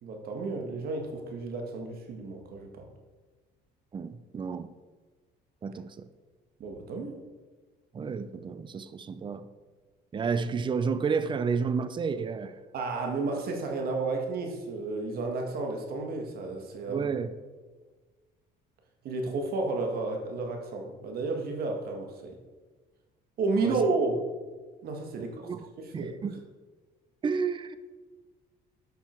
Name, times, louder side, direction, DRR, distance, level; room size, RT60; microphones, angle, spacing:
voice 1, 0.0-2.9 6.6-7.2 12.7-17.1 19.0-22.4 23.4-24.2 24.8-25.5 25.8-26.1, right 3 dB, 65° right, 1.8 m, -32 dB
voice 2, 3.9-4.7 5.6-6.1 7.9-9.5 10.1-12.5 16.9-17.3 23.6-23.8 25.2-25.7 25.9-26.4 27.2-27.8, right 5 dB, 30° right, 0.6 m, -31 dB
11.0 x 5.7 x 4.5 m
cardioid pair, 110°, 17 cm